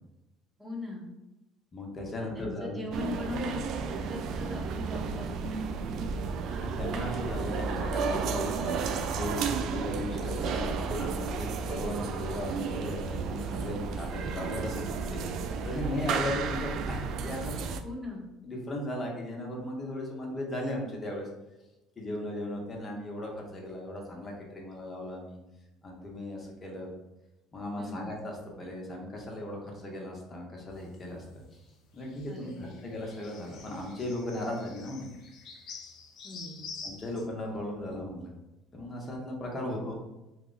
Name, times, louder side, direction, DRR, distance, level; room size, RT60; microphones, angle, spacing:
voice 1, 0.6-1.1 2.2-3.6 3.9-5.7 6.0-6.1 15.7-15.8 17.8-18.3 27.8-28.1 32.3-32.8 36.2-36.7 39.4-39.6, left 2 dB, 15° right, -1 dB, 1.0 m, -39 dB
voice 2, 1.7-2.8 6.6-8.8 9.1-17.6 18.4-21.3 22.0-25.4 25.8-26.9 27.5-31.6 31.9-35.1 36.8-38.3 38.7-40.0, left 1 dB, 30° left, -1 dB, 1.0 m, -37 dB
sound 1, 2.9-17.8, right 5 dB, 60° right, 0.3 m, -33 dB
sound 2, 30.7-37.3, left 5 dB, 60° left, 0.6 m, -48 dB
2.8 x 2.3 x 3.9 m, 0.99 s
supercardioid pair, 80°, 0 cm